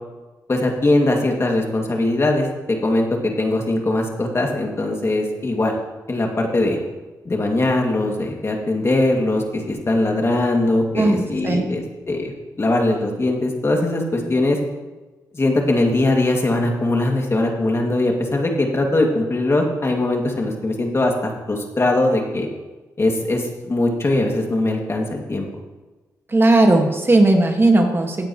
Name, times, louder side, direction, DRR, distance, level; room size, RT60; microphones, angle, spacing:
voice 1, 0.5-5.7 6.1-6.8 7.2-12.3 12.6-14.6 15.3-22.5 23.0-25.5, left 2 dB, 35° left, 1 dB, 2.3 m, -21 dB
voice 2, 10.9-11.7 26.3-28.3, right 2 dB, 30° right, 3 dB, 1.7 m, -16 dB
16.5 x 9.1 x 3.1 m, 1.2 s
cardioid pair, 55°, 7 cm